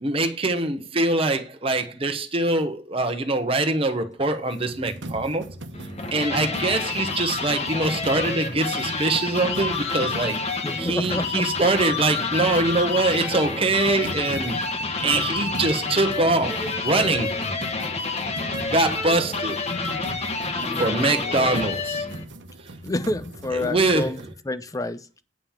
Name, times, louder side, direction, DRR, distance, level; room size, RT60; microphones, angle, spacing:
voice 1, 0.0-5.5 6.1-10.4 10.8-14.6 15.0-17.3 18.6-19.6 20.8-22.1 23.5-24.1, right 2 dB, 30° right, 1.1 m, -23 dB
sound 1, 4.5-24.3, right 1 dB, 90° right, 1.1 m, -39 dB
sound 2, 5.7-22.2, left 4 dB, 35° left, 1.3 m, -28 dB
voice 2, 10.6-11.5 20.5-21.6 22.8-24.2 24.5-25.0, left 2 dB, 20° left, 0.6 m, -29 dB
8.8 x 5.5 x 7.2 m
head